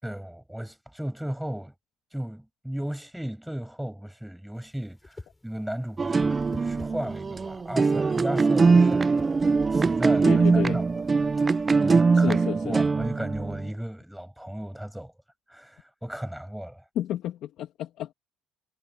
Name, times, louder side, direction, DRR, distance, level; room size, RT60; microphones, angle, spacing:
voice 1, 0.0-1.7 2.1-9.3 9.7-10.9 11.4-12.4 12.6-15.1 15.5-16.8, equal, 5° right, 6.7 m, -35 dB
Whoosh swoosh swish, 4.6-10.1, left 2 dB, 15° left, 7.1 m, -47 dB
sound 1, 6.0-13.7, right 4 dB, 30° right, 0.5 m, -22 dB
voice 2, 10.2-10.8 12.1-12.8 16.9-18.1, left 12 dB, 75° left, 2.4 m, -31 dB
cardioid pair, 95°, 0 cm